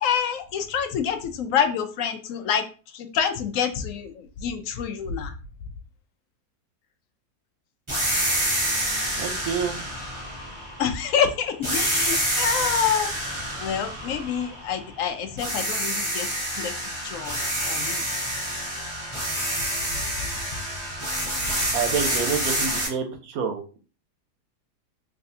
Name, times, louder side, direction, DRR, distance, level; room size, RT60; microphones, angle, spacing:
voice 1, 0.0-2.6 2.9-5.3 10.8-13.1 13.6-16.3 16.5-16.7 17.0-17.4 17.7-18.0, left 7 dB, 70° left, 7 dB, 0.8 m, -27 dB
sound 1, 7.9-11.2 11.6-15.0 15.4-22.9, right 1 dB, 20° right, 1.6 m, -28 dB
voice 2, 9.2-9.8 21.7-23.6, right 6 dB, 65° right, 5 dB, 1.1 m, -28 dB
3.6 x 3.3 x 2.6 m, 0.36 s
omnidirectional pair, 1.7 m